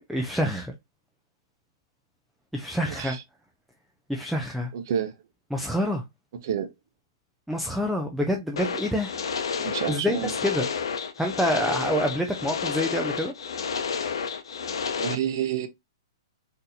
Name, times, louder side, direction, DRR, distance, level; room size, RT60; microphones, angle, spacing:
voice 1, 0.1-0.7 2.5-3.2 4.1-4.7 5.5-6.0 7.5-9.1 9.9-10.7 11.2-13.3, equal, ahead, 0.3 m, -27 dB
voice 2, 2.8-3.2 4.7-5.1 6.4-6.7 9.6-10.3 15.0-15.7, right 9 dB, 45° right, 0.6 m, -29 dB
sound 1, 8.6-15.1, left 6 dB, 75° left, 0.7 m, -30 dB
3.9 x 2.7 x 2.5 m
hypercardioid pair, 165°, 3 cm